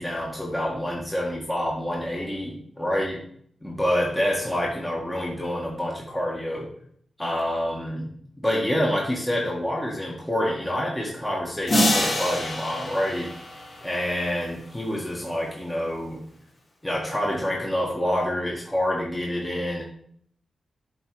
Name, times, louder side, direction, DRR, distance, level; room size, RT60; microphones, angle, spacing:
voice 1, 0.0-3.2 3.6-6.7 7.2-8.1 8.4-13.3 13.8-16.2 16.8-19.8, equal, 10° left, -3 dB, 1.7 m, -27 dB
sound 1, 11.7-14.4, left 1 dB, 50° left, 2.6 m, -26 dB
7.8 x 4.1 x 4.8 m, 0.63 s
cardioid pair, 75°, 0 cm